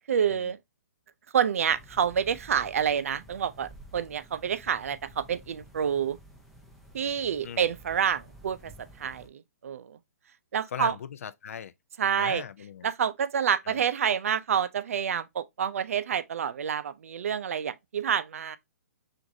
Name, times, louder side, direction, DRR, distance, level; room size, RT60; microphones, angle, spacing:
voice 1, 0.1-0.6 1.3-6.2 6.9-8.7 9.0-10.0 10.5-10.9 12.0-12.4 12.8-18.6, right 8 dB, 60° right, 0.4 m, -28 dB
sound 1, 1.7-9.3, right 1 dB, ahead, 0.4 m, -52 dB
voice 2, 10.7-11.7 12.2-12.9 13.7-13.8, left 8 dB, 65° left, 0.4 m, -39 dB
5.9 x 2.6 x 2.6 m
hypercardioid pair, 165°, 8 cm